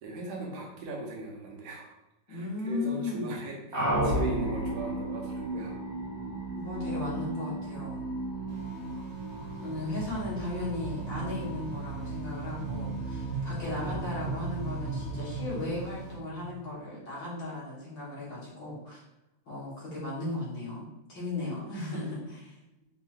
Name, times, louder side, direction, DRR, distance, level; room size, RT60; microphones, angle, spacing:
voice 1, 0.0-1.9 2.3-5.7 9.6-9.7, right 2 dB, 65° right, -1 dB, 1.3 m, -39 dB
voice 2, 2.3-3.4 6.5-8.0 9.6-19.0 19.5-22.5, left 2 dB, 75° left, -7 dB, 2.0 m, -36 dB
sound 1, 3.7-16.6, right 2 dB, 45° right, 1.1 m, -34 dB
sound 2, 8.5-16.1, right 6 dB, 85° right, 1.7 m, -49 dB
4.6 x 2.5 x 2.8 m, 0.92 s
omnidirectional pair, 2.0 m